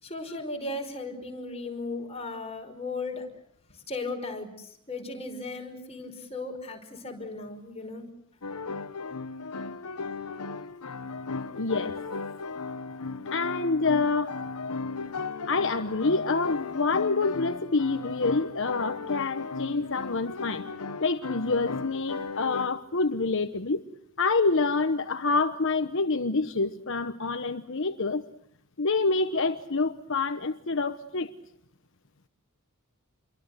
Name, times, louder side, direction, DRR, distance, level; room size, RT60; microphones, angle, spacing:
voice 1, 0.0-3.3 3.9-8.1, left 2 dB, 30° left, 4 dB, 5.3 m, -36 dB
sound 1, 8.4-22.7, left 4 dB, 85° left, 1.2 m, -36 dB
voice 2, 11.5-12.0 13.3-14.4 15.5-20.6 21.0-23.8 24.2-28.3 28.8-31.3, left 3 dB, 60° left, 8 dB, 1.1 m, -27 dB
28.5 x 23.5 x 8.0 m, 0.69 s
head